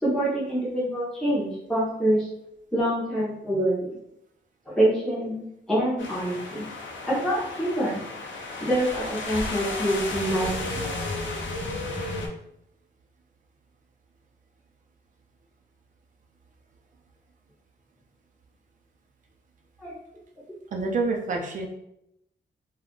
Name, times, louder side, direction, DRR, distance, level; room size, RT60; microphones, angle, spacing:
voice 1, 0.0-2.3 2.7-4.0 4.7-5.4 5.7-6.6 7.1-8.0 8.6-10.9 19.8-19.9, right 1 dB, 5° left, -9 dB, 0.7 m, -26 dB
sound 1, 6.0-12.3, left 2 dB, 85° left, 0.5 m, -33 dB
voice 2, 20.7-21.7, right 3 dB, 45° right, 1 dB, 0.4 m, -27 dB
2.3 x 2.1 x 3.6 m, 0.78 s
wide cardioid pair, 175°, 19 cm